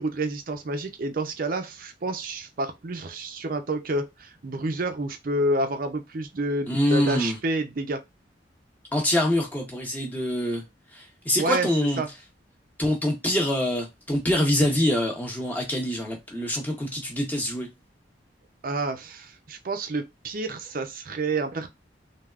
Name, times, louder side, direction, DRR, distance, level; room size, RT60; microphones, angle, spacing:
voice 1, 0.0-8.0 11.4-11.7 12.0-12.1 18.6-21.7, right 2 dB, 50° right, 0.5 m, -29 dB
voice 2, 6.7-7.4 8.9-10.6 10.9-12.0 12.8-17.7, left 1 dB, 10° left, 0.9 m, -25 dB
3.3 x 2.3 x 2.3 m
head